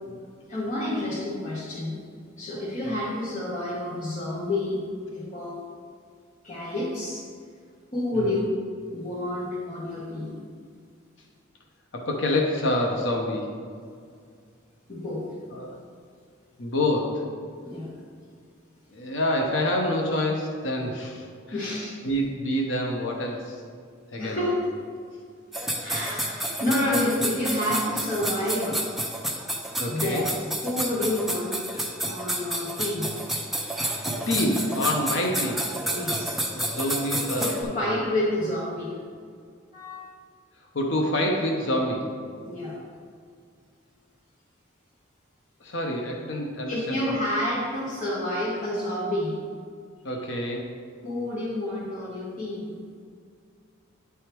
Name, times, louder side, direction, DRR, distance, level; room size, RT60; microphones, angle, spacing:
voice 1, 0.5-2.0 2.4-4.8 5.1-5.6 6.4-7.2 7.9-8.5 8.9-10.3 14.9-15.3 17.6-17.9 21.5-21.9 24.2-24.5 25.8-28.8 29.9-30.4 30.6-33.1 35.2-35.3 35.9-36.3 37.4-39.0 39.7-40.0 42.4-42.8 46.7-49.4 51.0-52.7, left 1 dB, 40° left, -8 dB, 1.3 m, -29 dB
voice 2, 11.9-13.5 15.5-15.8 16.6-17.2 18.9-21.7 22.0-23.6 24.1-24.4 25.9-26.2 29.8-30.3 34.3-35.6 36.5-38.0 40.7-42.2 45.6-47.1 50.0-50.7, left 1 dB, 65° left, 0 dB, 0.8 m, -27 dB
sound 1, 25.5-37.6, right 1 dB, ahead, 0.5 m, -30 dB
9.6 x 3.5 x 4.5 m, 2.2 s
head